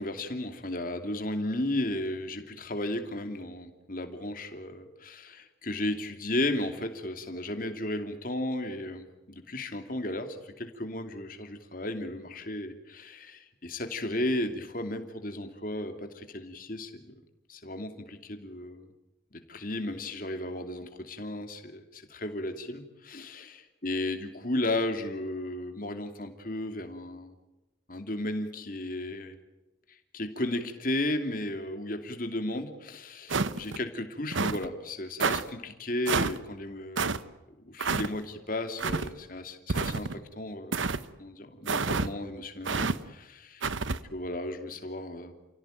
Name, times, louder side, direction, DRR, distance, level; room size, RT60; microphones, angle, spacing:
voice 1, 0.0-17.1 17.5-18.9 19.5-27.3 27.9-29.4 30.1-37.2 37.7-40.1 40.4-40.8 41.2-43.6 44.1-45.3, left 1 dB, 45° left, 6 dB, 2.7 m, -34 dB
sound 1, 33.3-33.8 34.3-34.7 35.2-35.4 36.1-36.4 37.0-37.2 37.8-38.1 38.8-39.1 39.7-40.2 40.7-41.0 41.7-42.1 42.7-43.0 43.6-44.0, right 4 dB, 80° right, 1.0 m, -28 dB
29.5 x 17.0 x 9.1 m, 1.1 s
head